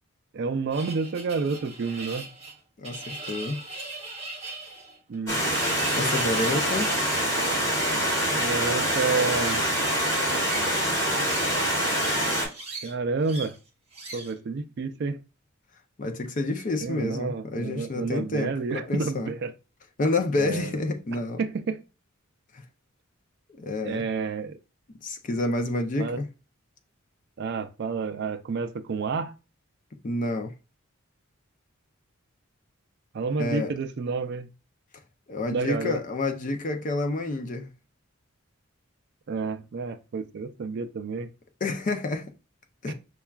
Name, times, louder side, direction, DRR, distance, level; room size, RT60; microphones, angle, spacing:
voice 1, 0.3-2.3 5.1-5.4 8.4-9.8 12.8-13.6 14.1-15.2 16.8-19.5 20.4-20.7 21.4-21.8 23.8-24.6 26.0-26.2 27.4-29.3 33.1-34.5 35.5-36.0 39.3-41.3 42.9-43.0, right 4 dB, 55° right, 0.4 m, -29 dB
sound 1, 0.7-7.2 9.3-9.9 10.4-11.6 11.8-12.9 13.2-13.6 13.9-14.4, right 3 dB, 30° right, 0.9 m, -39 dB
voice 2, 2.8-3.6 5.9-6.9 16.0-19.3 20.0-21.4 22.5-22.6 23.6-24.0 25.0-26.2 30.0-30.5 33.4-33.7 35.3-37.7 41.6-42.3 42.8-42.9, left 2 dB, 40° left, 0.5 m, -29 dB
Stream, 5.3-12.5, equal, 15° left, 1.3 m, -25 dB
5.5 x 2.3 x 2.3 m
head